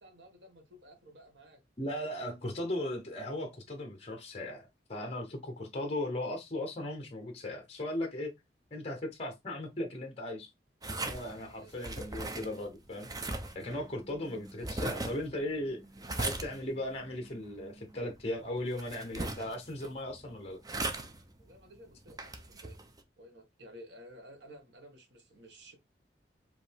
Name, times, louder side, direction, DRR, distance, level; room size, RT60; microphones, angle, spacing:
voice 1, 0.0-1.6 11.5-11.8 21.4-22.8 23.2-25.8, equal, 85° right, 1.5 m, -54 dB
voice 2, 1.8-8.3 8.7-10.5 11.0-13.1 13.5-15.8 16.2-20.6, left 1 dB, 35° left, 1.0 m, -37 dB
sound 1, 10.8-23.0, right 2 dB, 20° right, 0.6 m, -40 dB
5.1 x 3.0 x 3.4 m
head